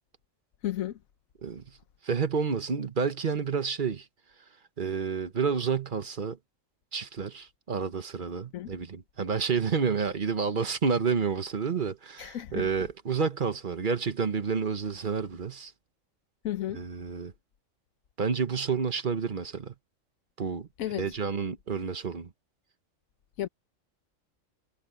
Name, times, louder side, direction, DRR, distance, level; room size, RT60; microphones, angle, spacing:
voice 1, 0.6-1.0 8.5-8.8 12.2-12.7 16.4-16.8 20.8-21.1 23.4-23.5, left 12 dB, 90° left, 1.2 m, -33 dB
voice 2, 1.4-1.8 2.0-4.1 4.8-6.4 6.9-15.7 16.7-17.3 18.2-19.7 20.4-20.7 21.0-22.3, right 6 dB, 40° right, 1.1 m, -29 dB
omnidirectional pair, 1.4 m